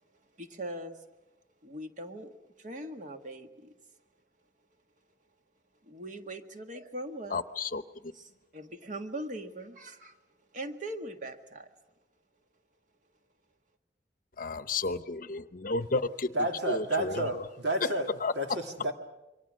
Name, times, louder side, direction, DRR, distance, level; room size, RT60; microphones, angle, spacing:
voice 1, 0.4-1.0 1.6-3.7 5.8-7.4 8.1-10.2 10.5-11.7, right 1 dB, 45° right, 6 dB, 1.8 m, -41 dB
voice 2, 7.3-7.8 14.4-16.0 16.7-17.1 18.2-18.3, left 3 dB, 50° left, 13 dB, 0.8 m, -32 dB
voice 3, 16.3-18.9, right 1 dB, 75° right, 4 dB, 2.6 m, -31 dB
27.5 x 24.0 x 6.4 m, 0.99 s
head